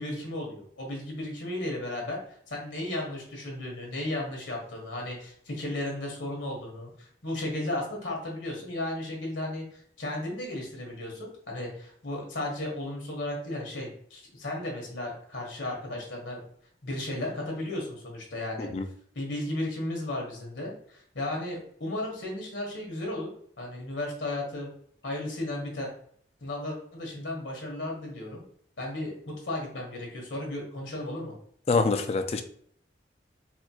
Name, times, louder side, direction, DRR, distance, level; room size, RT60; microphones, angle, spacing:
voice 1, 0.0-2.2 2.5-16.4 16.8-18.7 19.1-23.3 23.6-24.7 25.0-25.9 26.4-28.4 28.8-31.3, left 1 dB, 85° left, -1 dB, 1.3 m, -34 dB
voice 2, 31.7-32.4, left 4 dB, 35° left, 8 dB, 0.3 m, -25 dB
4.2 x 2.4 x 2.9 m, 0.62 s
head